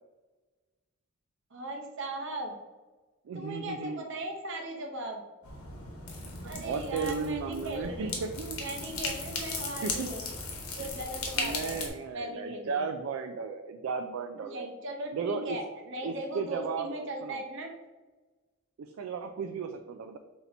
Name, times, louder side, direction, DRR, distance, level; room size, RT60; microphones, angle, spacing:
voice 1, 1.5-2.6 3.3-5.2 6.4-8.1 8.6-10.2 10.8-11.8 12.1-12.9 14.5-17.7, right 1 dB, 60° right, 2 dB, 0.8 m, -38 dB
voice 2, 3.3-4.0 6.4-8.6 9.8-10.1 10.8-10.9 11.4-14.7 15.1-15.6 16.0-17.4 18.8-20.2, right 5 dB, 75° right, 6 dB, 0.3 m, -35 dB
sound 1, 5.4-11.9, left 3 dB, 85° left, 1.0 m, -37 dB
4.0 x 2.8 x 4.3 m, 1.2 s
head